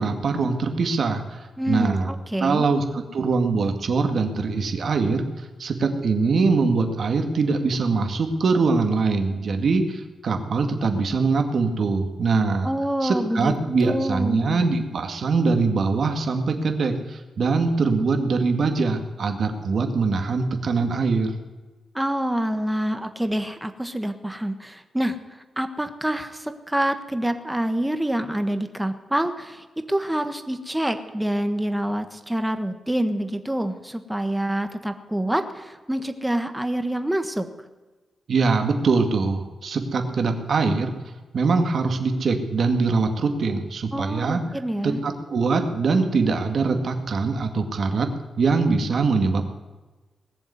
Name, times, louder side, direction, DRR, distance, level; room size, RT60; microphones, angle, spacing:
voice 1, 0.0-2.1 2.4-12.7 13.0-21.3 38.3-40.9 41.3-44.4 44.8-48.1 48.4-49.5, right 4 dB, 55° right, 5 dB, 2.1 m, -23 dB
voice 2, 1.6-2.7 12.6-13.6 13.8-14.7 21.9-37.5 43.9-45.0, right 1 dB, 5° right, 8 dB, 1.4 m, -26 dB
19.5 x 7.2 x 9.5 m, 1.2 s
wide cardioid pair, 120°, 0 cm